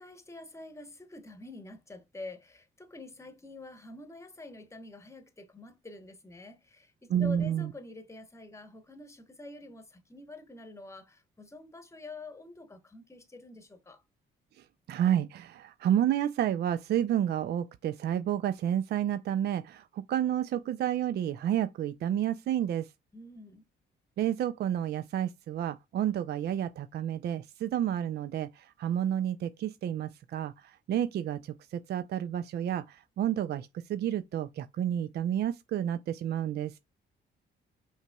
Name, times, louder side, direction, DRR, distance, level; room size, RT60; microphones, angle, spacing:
voice 1, 0.0-14.0 23.1-23.6, left 2 dB, 15° left, 1.0 m, -47 dB
voice 2, 7.1-7.7 14.9-22.9 24.2-36.7, right 10 dB, 55° right, 0.4 m, -30 dB
5.6 x 2.9 x 2.2 m
cardioid pair, 90°, 20 cm